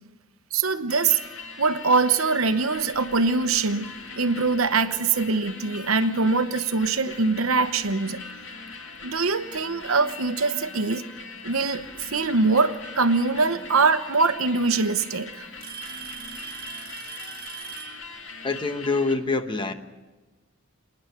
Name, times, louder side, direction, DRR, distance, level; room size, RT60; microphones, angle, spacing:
voice 1, 0.5-1.2 1.6-3.9 4.2-8.2 9.0-11.0 11.4-15.5, right 4 dB, 70° right, 10 dB, 1.0 m, -23 dB
sound 1, 0.9-19.2, left 4 dB, 65° left, 2.2 m, -41 dB
Alarm / Tick-tock, 4.1-4.3 5.2-5.3 6.1-6.2 7.9-8.0 9.2-9.3 10.5-11.0 12.7-12.8 14.1-14.2 14.5-14.9 15.6-18.0, right 7 dB, 45° right, 1.6 m, -40 dB
voice 2, 18.4-19.7, left 3 dB, 25° left, 8 dB, 1.1 m, -25 dB
27.0 x 10.5 x 9.2 m, 1.2 s
head